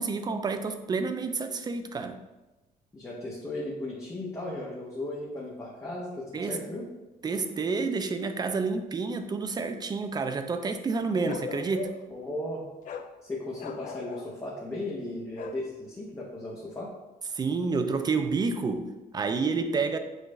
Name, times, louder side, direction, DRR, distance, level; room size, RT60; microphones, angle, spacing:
voice 1, 0.0-2.2 6.3-6.6 7.2-11.9 17.3-20.0, right 4 dB, 25° right, 8 dB, 0.4 m, -29 dB
voice 2, 2.9-6.9 12.1-12.6 13.2-16.9, left 1 dB, 15° left, -5 dB, 0.9 m, -36 dB
Bark, 11.3-12.2 12.8-13.1 13.6-14.3 15.4-15.6, left 6 dB, 50° left, 0.4 m, -39 dB
6.3 x 2.5 x 3.1 m, 1.1 s
cardioid pair, 110°, 17 cm